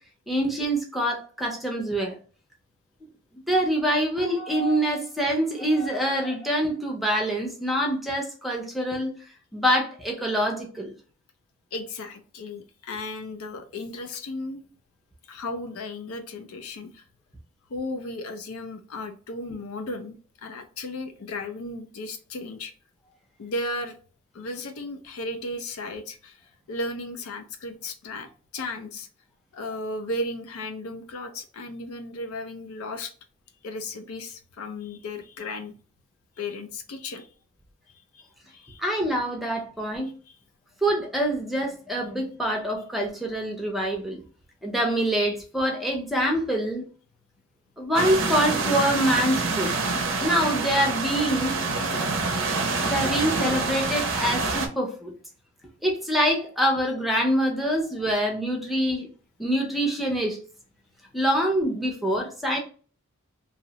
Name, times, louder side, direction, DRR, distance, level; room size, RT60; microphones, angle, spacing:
voice 1, 0.3-2.1 3.5-9.1 9.5-10.9 38.8-40.1 40.8-44.2 44.6-46.9 47.8-49.7 50.2-51.5 52.8-55.1 55.8-59.1 59.4-60.4 61.1-62.6, equal, ahead, 0.5 m, -25 dB
voice 2, 11.7-14.6 15.3-17.0 17.7-22.7 23.4-24.0 24.3-29.1 29.5-33.1 33.6-35.7 36.4-37.3 38.1-38.8 39.5-39.6 40.3-40.4, left 2 dB, 80° left, 0.4 m, -35 dB
sound 1, 48.0-54.7, right 3 dB, 60° right, 0.5 m, -26 dB
2.7 x 2.0 x 2.7 m
head